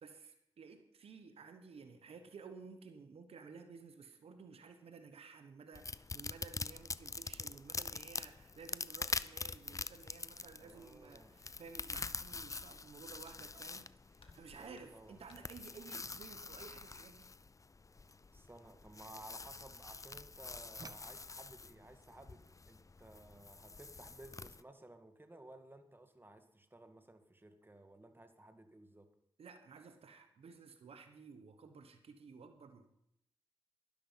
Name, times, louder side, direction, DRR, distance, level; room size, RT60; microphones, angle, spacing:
voice 1, 0.0-17.3 29.4-32.9, right 5 dB, 90° right, 8 dB, 1.2 m, -54 dB
sound 1, 5.7-24.6, left 4 dB, 35° left, 0.5 m, -45 dB
voice 2, 10.6-11.4 14.6-15.5 18.3-29.1, right 1 dB, 20° right, 7 dB, 2.1 m, -57 dB
sound 2, 13.2-13.5 13.7-14.5 14.7-15.5 16.6-16.7 17.2-17.3 18.1-18.4 18.8-19.2, left 4 dB, 70° left, 2.1 m, -66 dB
sound 3, 13.2-19.6 20.0-21.2, right 3 dB, 40° right, 0.7 m, -61 dB
12.5 x 11.5 x 5.7 m, 0.77 s
cardioid pair, 55°, 10 cm